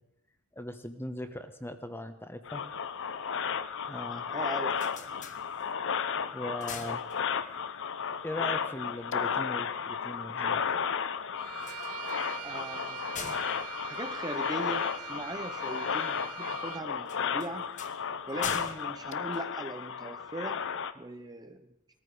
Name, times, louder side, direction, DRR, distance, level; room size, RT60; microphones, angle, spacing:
voice 1, 0.5-2.6 3.9-4.3 6.3-7.1 8.2-10.6, left 1 dB, 10° left, 8 dB, 1.1 m, -39 dB
sound 1, 2.5-20.9, left 7 dB, 60° left, 0.7 m, -33 dB
voice 2, 3.9-5.2 12.4-13.1 13.8-17.7 18.3-20.7 20.9-21.6, right 1 dB, 20° right, 7 dB, 0.8 m, -40 dB
sound 2, 4.5-6.0 6.4-7.7 11.5-14.9 17.0-20.1, left 6 dB, 35° left, 1.2 m, -45 dB
Bowed string instrument, 11.4-16.9, right 11 dB, 85° right, 0.6 m, -43 dB
19.0 x 14.0 x 5.0 m, 0.84 s
head